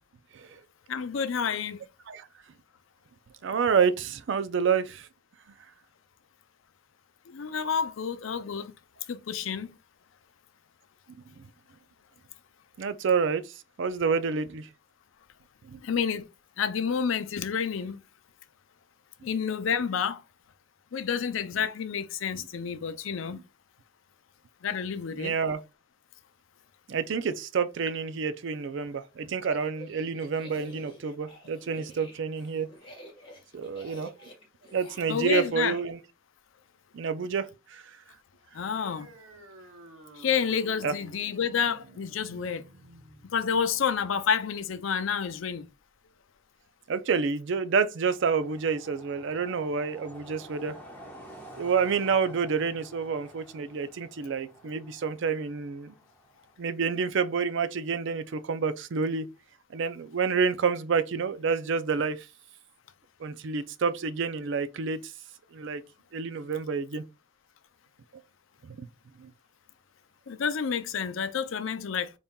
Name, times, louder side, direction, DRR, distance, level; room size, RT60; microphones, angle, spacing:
voice 1, 0.9-1.8 7.3-8.7 9.1-9.7 15.8-16.3 16.6-18.0 19.2-20.2 20.9-23.4 24.6-25.3 35.1-35.7 38.5-39.1 40.2-42.6 43.3-45.7 70.3-72.1, left 7 dB, 75° left, 0.5 m, -29 dB
voice 2, 3.4-5.1 11.4-11.5 12.8-13.5 13.8-14.7 15.7-15.8 23.3-23.4 25.2-25.6 26.9-32.7 33.5-34.1 34.7-36.0 36.9-37.8 40.8-41.0 46.9-50.8 51.6-55.9 56.6-59.3 59.7-62.2 63.2-65.0 65.5-65.8 66.1-67.0 68.7-68.9 69.2-69.3, right 5 dB, 65° right, 0.4 m, -28 dB
sound 1, 29.6-35.8, equal, 25° left, 1.3 m, -50 dB
sound 2, 38.8-45.8, right 1 dB, 90° right, 0.9 m, -52 dB
sound 3, 48.0-56.5, right 1 dB, 10° left, 1.1 m, -50 dB
4.0 x 3.6 x 2.3 m
head